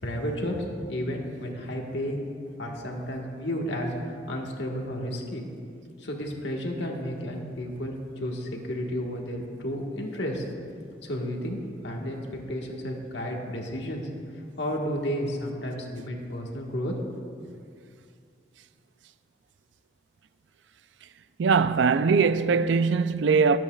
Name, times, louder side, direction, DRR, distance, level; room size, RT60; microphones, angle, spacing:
voice 1, 0.0-2.3 2.6-5.4 6.0-10.4 11.0-14.1 14.6-17.2, equal, 80° left, 1.5 m, -32 dB
voice 2, 21.4-23.6, right 5 dB, 85° right, 0.4 m, -21 dB
22.5 x 8.4 x 2.4 m
head